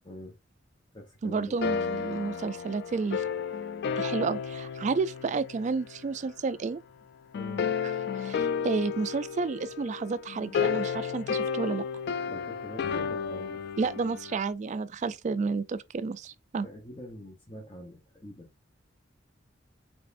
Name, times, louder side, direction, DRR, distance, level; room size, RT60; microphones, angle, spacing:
voice 1, 0.0-0.4 0.9-1.6 7.3-7.6 12.3-13.8 16.6-18.5, left 1 dB, 25° left, 0.9 m, -44 dB
voice 2, 1.2-3.2 4.0-6.8 8.2-11.8 13.8-16.7, right 4 dB, 40° right, 0.3 m, -31 dB
sound 1, 1.6-6.2 7.3-14.5, left 6 dB, 60° left, 0.3 m, -32 dB
5.2 x 3.4 x 2.5 m
head